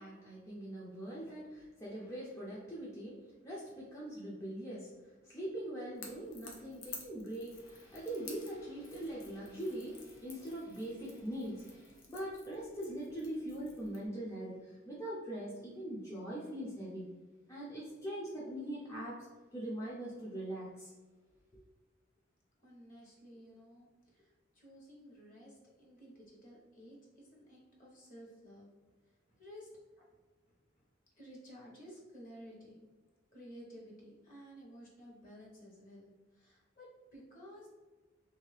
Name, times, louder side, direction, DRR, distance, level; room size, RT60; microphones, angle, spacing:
voice 1, 0.0-3.2 3.4-4.9 5.2-17.1 17.5-19.1 19.5-20.9, right 1 dB, 15° left, -7 dB, 0.6 m, -42 dB
Crackle / Crack, 5.9-14.1, left 4 dB, 85° left, 0.7 m, -53 dB
voice 2, 22.6-28.7 29.3-30.1 31.2-32.9 33.3-37.7, equal, 45° left, -3 dB, 1.2 m, -54 dB
3.1 x 2.7 x 3.2 m, 1.3 s
head